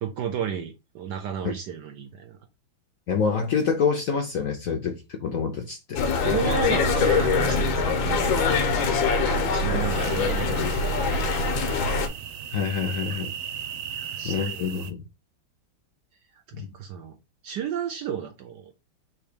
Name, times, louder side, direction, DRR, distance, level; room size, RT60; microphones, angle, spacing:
voice 1, 0.0-2.4 6.2-8.7 9.2-11.6 13.9-14.5 16.6-17.2 17.4-18.7, right 7 dB, 70° right, 1.2 m, -33 dB
voice 2, 3.1-6.0 9.7-9.8 12.5-13.3 14.2-15.0 16.5-16.7, left 6 dB, 65° left, 0.8 m, -27 dB
sound 1, 6.0-12.1, left 4 dB, 85° left, 1.6 m, -23 dB
sound 2, 9.9-14.9, right 9 dB, 90° right, 1.4 m, -37 dB
3.6 x 3.0 x 4.9 m
omnidirectional pair, 2.1 m